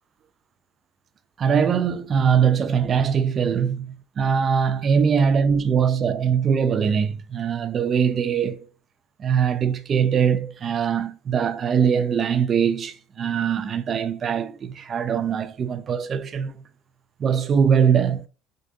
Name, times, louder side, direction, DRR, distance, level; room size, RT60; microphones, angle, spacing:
voice 1, 1.4-8.7 9.2-16.5 17.2-18.2, right 7 dB, 40° right, 0.6 m, -22 dB
7.5 x 2.5 x 2.6 m
supercardioid pair, 90°, 0 cm